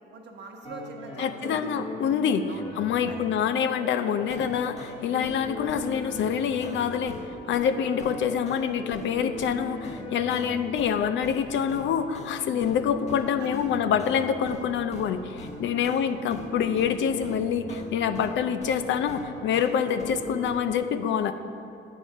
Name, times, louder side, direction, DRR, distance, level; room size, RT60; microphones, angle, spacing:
voice 1, 0.1-1.7 2.5-2.7 3.1-3.2 13.4-13.5 15.8-15.9, right 3 dB, 60° right, 2 dB, 1.1 m, -42 dB
sound 1, 0.6-14.7 14.9-18.3 18.6-20.5, left 2 dB, 35° left, 1.2 m, -39 dB
voice 2, 1.2-2.5 2.8-7.2 7.5-21.3, left 7 dB, 70° left, 10 dB, 0.5 m, -26 dB
8.6 x 4.8 x 6.5 m, 2.7 s
cardioid pair, 90°, 20 cm